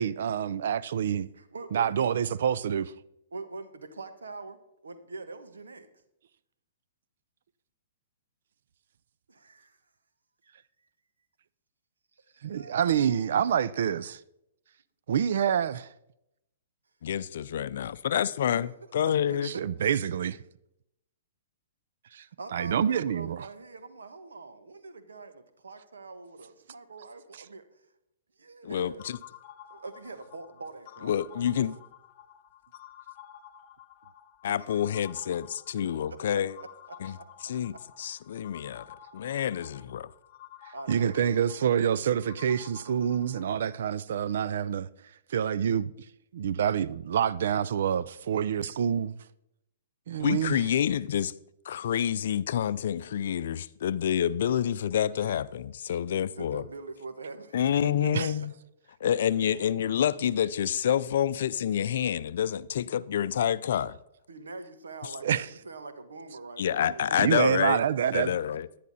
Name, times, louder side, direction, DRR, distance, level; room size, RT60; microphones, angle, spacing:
voice 1, 0.0-1.3 1.7-2.9 12.4-14.2 15.1-15.9 19.4-20.4 22.1-22.3 22.5-23.4 40.9-44.9 45.3-45.9 46.3-49.2 50.1-50.6 58.1-58.3 65.2-65.5 67.2-68.3, right 8 dB, 65° right, 0.5 m, -27 dB
voice 2, 1.4-2.4 3.3-5.9 9.3-9.8 10.4-10.7 12.3-13.4 17.8-18.3 18.5-18.6 19.3-19.6 22.4-27.8 28.4-29.1 29.7-31.8 34.5-34.8 36.1-37.3 40.7-41.8 56.2-57.5 57.8-58.1 58.4-58.5 64.3-67.5 68.2-68.6, right 3 dB, 85° right, 1.3 m, -44 dB
voice 3, 17.0-19.5 28.6-29.2 31.0-31.7 34.4-36.5 37.0-37.2 37.4-38.9 39.1-40.1 50.2-51.3 51.7-56.6 57.5-58.5 59.0-64.0 65.0-65.1 66.6-67.8 68.1-68.7, left 9 dB, 65° left, 0.4 m, -28 dB
sound 1, 29.0-43.8, left 11 dB, 50° left, 1.0 m, -51 dB
10.5 x 10.0 x 4.1 m
hypercardioid pair, 125°, 0 cm